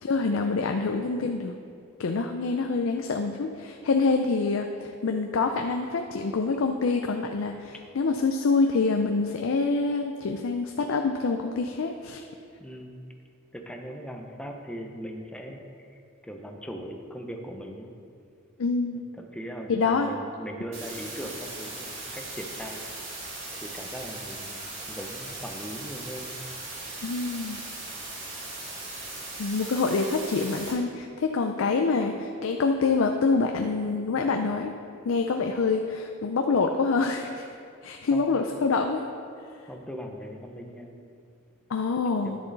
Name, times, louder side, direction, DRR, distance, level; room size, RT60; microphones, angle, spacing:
voice 1, 0.0-1.5 2.0-12.2 18.6-19.0 19.7-20.1 27.0-27.6 29.4-34.7 35.0-37.4 37.8-39.0 41.7-42.4, left 4 dB, 75° left, 4 dB, 0.5 m, -26 dB
voice 2, 12.6-12.9 13.5-15.6 15.9-17.9 19.2-22.8 23.6-24.6 24.9-26.3 38.1-38.2 39.7-40.9 42.2-42.4, equal, 5° left, 2 dB, 0.7 m, -39 dB
sound 1, 20.7-30.7, right 2 dB, 70° right, 2.3 m, -38 dB
10.5 x 6.8 x 4.0 m, 2.4 s
head